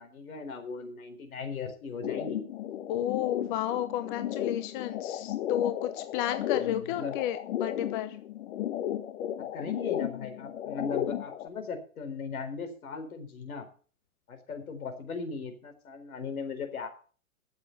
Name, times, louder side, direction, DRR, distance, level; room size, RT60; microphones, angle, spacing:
voice 1, 0.0-2.4 6.6-7.1 9.5-13.7 14.3-16.9, left 5 dB, 75° left, 6 dB, 4.4 m, -38 dB
sound 1, 2.0-11.5, left 11 dB, 55° left, 1.4 m, -34 dB
voice 2, 2.9-8.2, left 11 dB, 35° left, 10 dB, 0.9 m, -32 dB
14.0 x 7.5 x 6.8 m, 0.41 s
hypercardioid pair, 135°, 43 cm